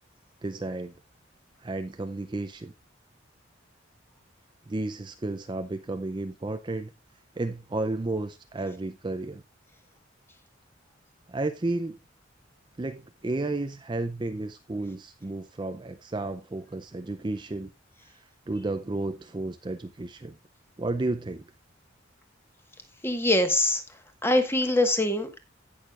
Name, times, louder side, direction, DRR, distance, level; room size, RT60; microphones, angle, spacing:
voice 1, 0.4-0.9 1.6-2.7 4.7-6.9 7.4-9.4 11.3-12.0 12.8-17.7 18.5-20.3 20.8-21.4, right 2 dB, 25° right, 0.4 m, -32 dB
voice 2, 23.0-23.8 24.2-25.4, left 1 dB, 10° left, 1.4 m, -23 dB
17.0 x 6.4 x 2.4 m
head